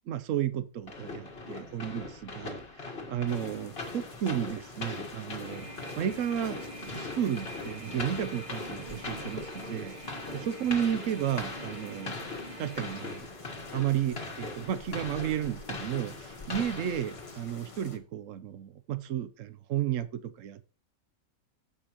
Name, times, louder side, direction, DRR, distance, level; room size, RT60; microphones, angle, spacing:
voice 1, 0.1-2.6 3.1-5.7 6.0-10.0 10.3-12.1 12.6-13.3 13.7-20.7, right 10 dB, 70° right, 1.0 m, -33 dB
sound 1, 0.9-17.6, left 3 dB, 45° left, 1.8 m, -41 dB
sound 2, 3.3-18.0, left 3 dB, 25° left, 0.9 m, -49 dB
sound 3, 5.4-13.2, right 1 dB, 30° right, 2.2 m, -45 dB
15.0 x 5.6 x 3.0 m
omnidirectional pair, 1.5 m